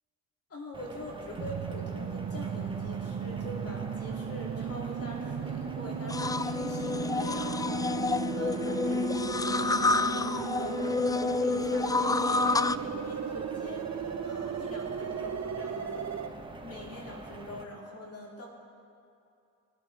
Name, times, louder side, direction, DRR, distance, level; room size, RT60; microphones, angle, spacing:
voice 1, 0.5-16.4 16.6-18.5, left 1 dB, 40° left, -2 dB, 2.8 m, -44 dB
sound 1, 0.7-17.6, right 2 dB, 15° right, 1.6 m, -45 dB
sound 2, 1.4-16.3, right 7 dB, 45° right, 1.0 m, -36 dB
sound 3, 6.1-12.8, left 3 dB, 10° left, 0.3 m, -29 dB
24.0 x 8.1 x 3.4 m, 2.6 s
hypercardioid pair, 55°, 37 cm